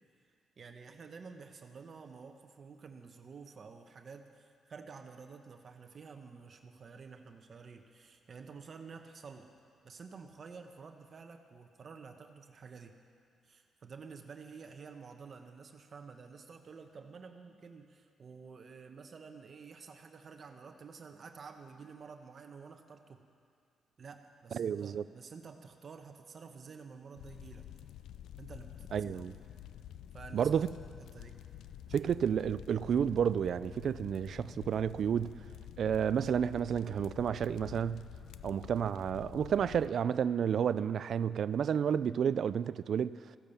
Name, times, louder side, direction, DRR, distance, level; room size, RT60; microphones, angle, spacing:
voice 1, 0.6-9.5 9.8-12.9 13.4-23.2 24.0-27.7 28.4-29.3 30.1-30.5 30.8-31.4 31.9-32.1, right 5 dB, 45° right, 0.9 m, -50 dB
voice 2, 24.5-25.0 28.9-29.4 30.3-30.7 31.9-35.4 35.8-38.0 38.4-43.2, right 8 dB, 60° right, 0.3 m, -31 dB
sound 1, 27.2-39.9, left 11 dB, 85° left, 0.4 m, -49 dB
15.0 x 10.5 x 7.0 m
cardioid pair, 95°, 0 cm